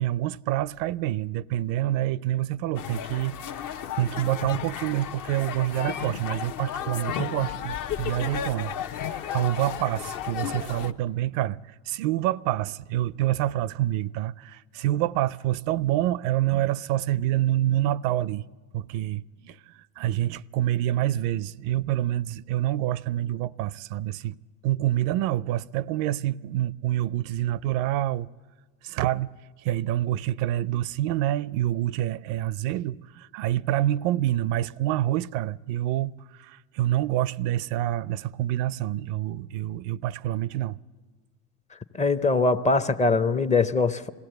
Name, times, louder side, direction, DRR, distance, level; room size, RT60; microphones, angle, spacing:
voice 1, 0.0-3.4 4.0-8.7 9.0-18.4 18.7-24.4 24.6-28.3 28.8-29.3 29.6-40.8, right 13 dB, 70° right, 0.5 m, -27 dB
sound 1, 2.7-10.9, left 9 dB, 50° left, 0.9 m, -33 dB
voice 2, 41.9-44.1, left 3 dB, 20° left, 0.5 m, -22 dB
21.0 x 16.0 x 7.9 m
supercardioid pair, 95°, 40 cm